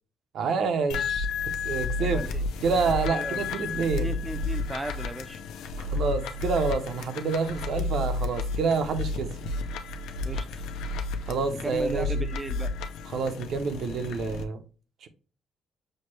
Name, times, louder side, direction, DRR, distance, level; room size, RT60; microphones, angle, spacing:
voice 1, 0.3-1.3 1.6-2.2 2.6-4.2 5.8-9.3 11.2-12.3 13.1-14.6 15.0-15.1, right 4 dB, 60° right, 0.6 m, -28 dB
sound 1, 0.9-14.4, left 3 dB, 90° left, 0.5 m, -32 dB
voice 2, 2.0-2.4 3.1-5.4 10.2-10.6 11.6-12.7, right 2 dB, 15° right, 0.4 m, -37 dB
6.3 x 2.2 x 3.0 m
cardioid pair, 130°, 0 cm